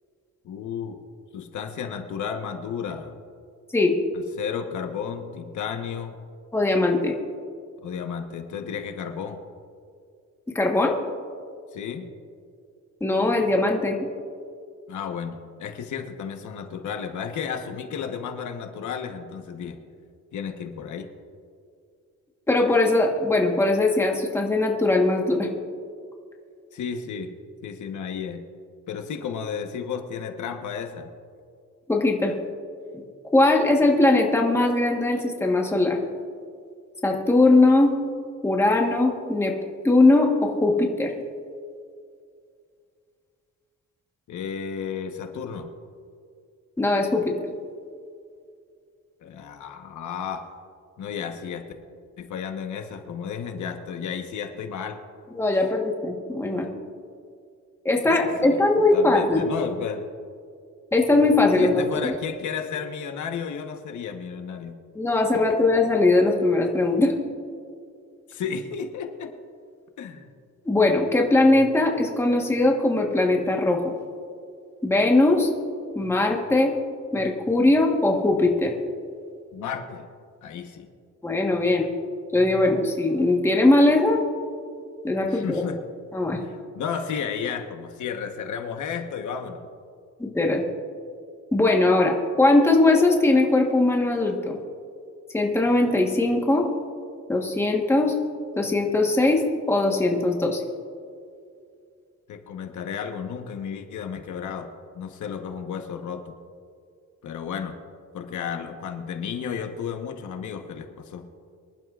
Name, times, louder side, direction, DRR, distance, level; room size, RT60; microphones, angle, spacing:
voice 1, 0.4-1.0 1.3-3.1 4.1-6.1 7.8-9.4 11.7-12.1 14.9-19.8 20.3-21.1 26.7-27.3 27.6-28.5 28.9-31.1 44.3-45.7 49.2-50.5 51.0-51.6 52.2-55.0 58.0-60.0 61.6-64.8 68.3-69.3 70.0-70.3 79.5-80.1 80.4-80.9 81.8-81.9 85.2-85.8 86.4-89.6 102.3-104.7 104.9-106.4 107.2-107.8 108.1-111.3, left 7 dB, 75° left, 5 dB, 1.1 m, -33 dB
voice 2, 6.5-7.1 10.5-10.9 13.0-14.0 22.5-25.5 31.9-32.3 32.9-33.0 33.3-36.0 37.0-37.9 38.4-39.5 39.8-41.1 46.8-47.3 55.4-56.6 57.8-59.5 60.9-61.8 64.9-67.1 70.6-73.9 74.8-75.5 75.9-76.7 77.1-78.7 81.2-81.8 82.3-84.2 85.0-85.6 86.1-86.4 90.2-90.6 91.5-94.6 95.3-96.7 97.3-98.1 98.6-99.4 99.7-100.6, left 2 dB, 10° left, 0 dB, 1.2 m, -20 dB
24.5 x 11.5 x 2.4 m, 2.3 s
wide cardioid pair, 170°, 30 cm